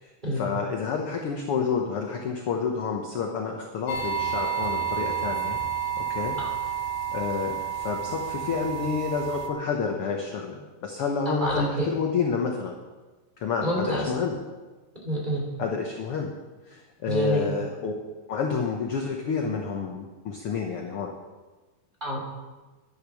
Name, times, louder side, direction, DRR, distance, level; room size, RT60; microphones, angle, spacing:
voice 1, 0.0-5.6 6.0-6.4 6.6-6.8 7.1-12.7 13.4-14.4 15.6-16.3 16.7-17.9 18.3-21.1, left 5 dB, 65° left, 1 dB, 1.5 m, -29 dB
sound 1, 3.9-9.5, right 8 dB, 85° left, 2.9 m, -30 dB
voice 2, 11.2-11.9 13.6-14.0 15.0-15.4 17.1-17.5 22.0-22.2, equal, 15° right, -2 dB, 3.3 m, -27 dB
11.5 x 10.5 x 6.3 m, 1.2 s
omnidirectional pair, 3.9 m